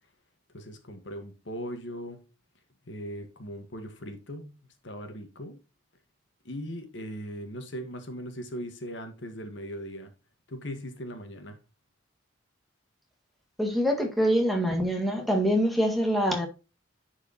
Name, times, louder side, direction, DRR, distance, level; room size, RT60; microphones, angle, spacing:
voice 1, 0.5-2.2 2.9-4.5 4.8-5.6 6.4-10.1 10.5-11.6, equal, 65° left, 1.5 m, -39 dB
voice 2, 13.6-16.5, equal, ahead, 1.7 m, -25 dB
10.5 x 4.8 x 2.9 m
head